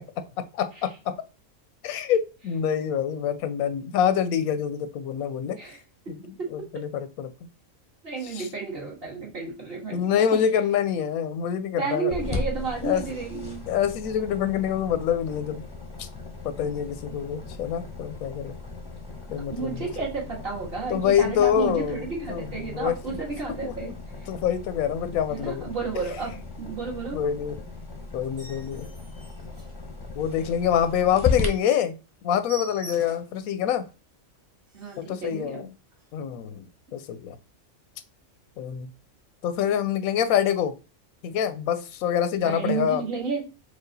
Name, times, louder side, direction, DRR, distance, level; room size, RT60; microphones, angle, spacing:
voice 1, 0.5-1.1 1.8-5.6 6.1-7.3 8.2-8.5 9.9-12.1 12.8-13.0 13.3-15.6 16.0-16.1 16.4-18.5 19.3-19.9 20.9-23.2 23.6-23.9 24.3-25.7 27.1-27.7 28.1-28.9 30.2-32.0 32.2-33.9 35.0-35.7 36.1-36.6 36.9-37.4 38.6-38.9 39.4-40.7 41.2-43.0, left 9 dB, 90° left, 1.0 m, -26 dB
voice 2, 8.0-10.0 11.8-13.6 17.1-17.2 19.5-23.9 25.3-27.2 34.7-35.7 42.4-43.4, right 4 dB, 45° right, 1.8 m, -32 dB
sound 1, 12.1-31.5, left 4 dB, 25° left, 0.6 m, -36 dB
sound 2, 28.2-30.4 30.8-30.9 31.3-31.4 31.7-31.8 32.1-33.4 33.9-34.0 34.4-34.5 34.7-35.2 35.9-36.1, right 3 dB, 60° right, 1.6 m, -45 dB
4.7 x 2.4 x 3.9 m
omnidirectional pair, 1.4 m